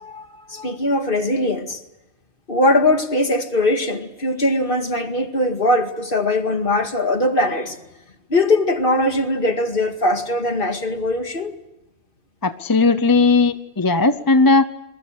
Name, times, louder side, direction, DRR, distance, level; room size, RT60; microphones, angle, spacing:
voice 1, 0.0-1.8 2.5-7.8 8.3-11.5, left 1 dB, 45° left, 6 dB, 2.3 m, -20 dB
voice 2, 12.4-14.6, left 3 dB, 20° left, 11 dB, 0.7 m, -16 dB
27.5 x 22.0 x 6.7 m, 0.94 s
omnidirectional pair, 1.3 m